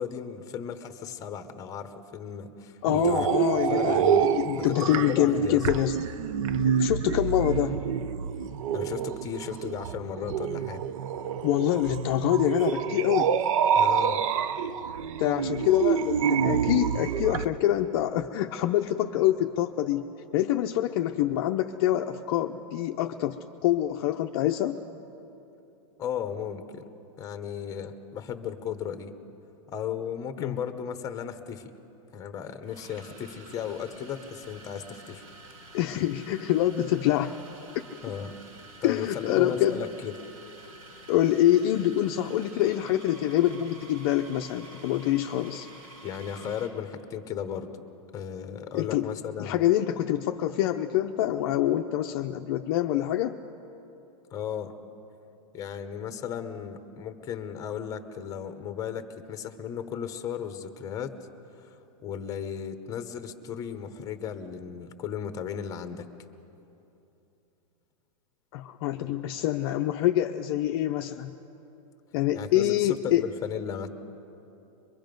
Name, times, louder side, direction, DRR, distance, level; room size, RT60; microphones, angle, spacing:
voice 1, 0.0-4.3 4.6-5.7 8.7-10.8 13.7-14.2 26.0-26.8 27.2-29.1 29.7-31.7 32.1-35.2 38.0-38.3 38.8-40.1 46.0-47.7 48.1-49.6 54.3-54.7 55.5-61.1 61.6-66.1 72.3-73.9, left 8 dB, 20° left, 9 dB, 1.0 m, -35 dB
voice 2, 2.8-5.9 6.8-7.8 11.4-13.3 15.2-24.8 30.4-30.6 35.7-37.3 38.8-39.8 41.1-45.7 48.7-49.1 49.4-53.4 68.5-71.3 72.1-73.2, left 13 dB, 45° left, 4 dB, 0.6 m, -26 dB
sound 1, 2.8-17.4, right 7 dB, 65° right, 0.8 m, -27 dB
sound 2, 31.3-31.5 32.6-46.8, right 2 dB, 80° right, 4.8 m, -49 dB
23.5 x 23.0 x 5.3 m, 2.9 s
supercardioid pair, 160°, 18 cm